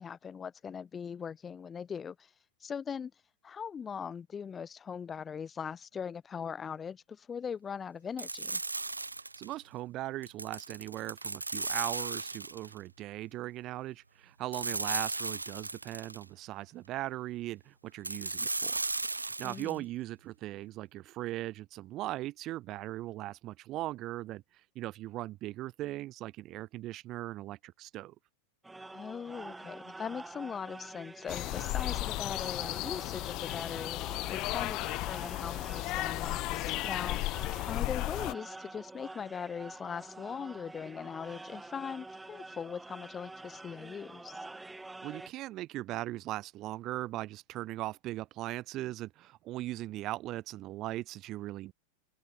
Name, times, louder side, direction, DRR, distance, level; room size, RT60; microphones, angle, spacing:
voice 1, 0.0-2.3 2.6-3.1 3.4-8.6 19.4-19.9 28.9-44.5, left 7 dB, 20° left, 2.9 m, -40 dB
sound 1, 8.2-9.5 10.2-12.8 14.5-16.2 18.0-19.8, right 3 dB, 80° right, 0.3 m, -36 dB
voice 2, 9.4-18.8 19.0-24.4 24.8-28.1 45.0-51.7, right 16 dB, 35° right, 2.1 m, -39 dB
sound 2, 28.6-45.3, right 2 dB, 5° right, 3.9 m, -47 dB
sound 3, 31.3-38.3, left 20 dB, 40° left, 0.3 m, -34 dB
figure-of-eight pair, 90°, 0 cm